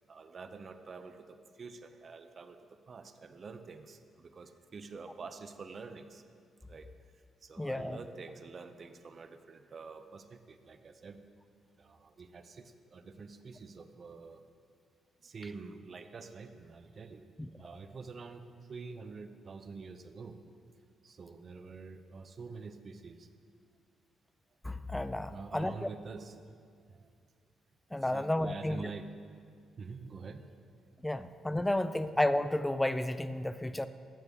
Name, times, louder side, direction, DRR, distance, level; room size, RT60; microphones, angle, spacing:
voice 1, 0.1-2.6 2.9-6.2 6.7-6.9 7.4-11.2 11.8-14.4 15.2-17.3 17.6-18.4 18.7-20.4 21.0-23.3 25.3-26.4 26.9-27.1 28.0-29.1 29.8-30.5 33.4-33.6, right 4 dB, 45° right, 8 dB, 0.6 m, -47 dB
voice 2, 7.6-8.0 17.4-17.5 24.6-25.9 27.9-28.9 31.0-33.9, left 1 dB, 10° left, 12 dB, 0.4 m, -32 dB
15.0 x 6.7 x 3.6 m, 2.2 s
cardioid pair, 90°, 0 cm